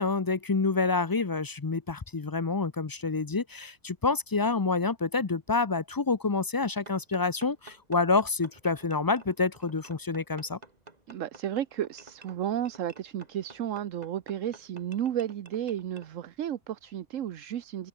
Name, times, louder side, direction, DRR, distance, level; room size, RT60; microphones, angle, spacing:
voice 1, 0.0-10.6, left 4 dB, 25° left, 0.4 m, -28 dB
sound 1, 6.9-16.1, right 3 dB, 30° right, 2.2 m, -52 dB
voice 2, 11.1-17.9, right 10 dB, 80° right, 1.2 m, -33 dB
omnidirectional pair, 1.3 m